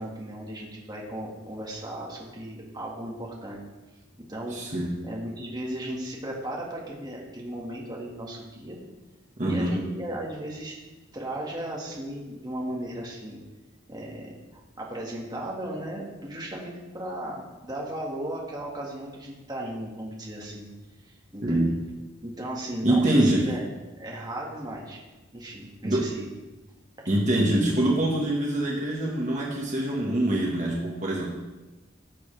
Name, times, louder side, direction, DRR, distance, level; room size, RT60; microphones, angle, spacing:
voice 1, 0.0-3.6 4.3-8.8 9.4-10.8 11.1-13.4 13.9-20.7 21.0-21.7 22.2-23.7 24.0-25.0 25.3-26.3, right 1 dB, 20° right, -3 dB, 1.9 m, -36 dB
voice 2, 4.5-4.9 9.4-9.8 21.4-21.8 22.8-23.5 25.8-26.1 27.1-31.3, right 1 dB, 40° right, -3 dB, 1.6 m, -24 dB
15.0 x 7.0 x 3.4 m, 1.2 s
head